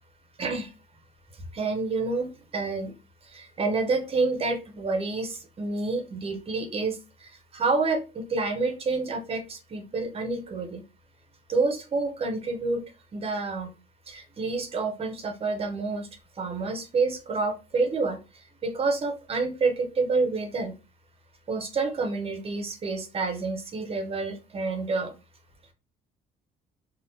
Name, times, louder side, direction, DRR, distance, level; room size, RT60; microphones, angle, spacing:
voice 1, 0.4-0.7 1.5-2.9 3.2-10.8 11.5-12.8 13.1-13.7 14.1-16.1 16.4-20.7 21.5-25.1, right 3 dB, 35° right, 5 dB, 0.8 m, -28 dB
3.4 x 2.5 x 2.8 m, 0.30 s
cardioid pair, 110°, 17 cm